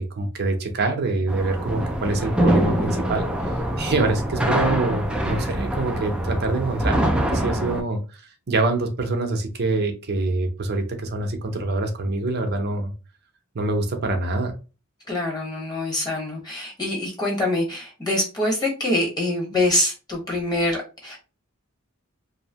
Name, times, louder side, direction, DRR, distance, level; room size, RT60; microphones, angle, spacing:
voice 1, 0.0-3.2 3.8-8.2 8.5-12.9 13.5-14.6, right 2 dB, 50° right, 5 dB, 0.6 m, -25 dB
sound 1, 1.3-7.8, right 1 dB, 5° right, 0.3 m, -24 dB
voice 2, 15.1-21.2, left 1 dB, 20° left, -1 dB, 1.1 m, -25 dB
2.7 x 2.0 x 2.8 m, 0.31 s
head